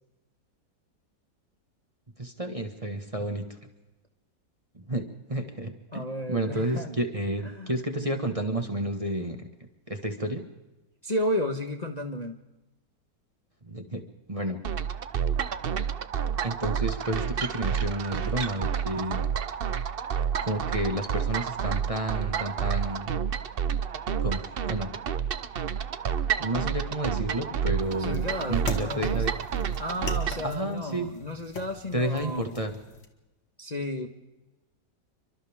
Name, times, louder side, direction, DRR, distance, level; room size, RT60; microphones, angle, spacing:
voice 1, 2.2-3.4 4.7-6.0 6.3-9.4 9.9-10.4 13.6-14.0 14.3-14.6 16.4-19.3 20.4-23.1 24.2-24.9 26.4-28.2 28.5-29.3 30.4-31.1 31.9-32.7, right 1 dB, 20° right, 4 dB, 1.7 m, -31 dB
voice 2, 5.9-6.9 7.4-7.7 11.0-12.4 28.0-29.2 29.8-32.5 33.6-34.1, left 1 dB, 25° left, 4 dB, 1.4 m, -32 dB
sound 1, 14.6-30.5, right 7 dB, 50° right, 0.6 m, -29 dB
sound 2, 27.8-33.1, left 3 dB, 90° left, 2.7 m, -42 dB
29.5 x 24.5 x 3.7 m, 1.0 s
omnidirectional pair, 1.9 m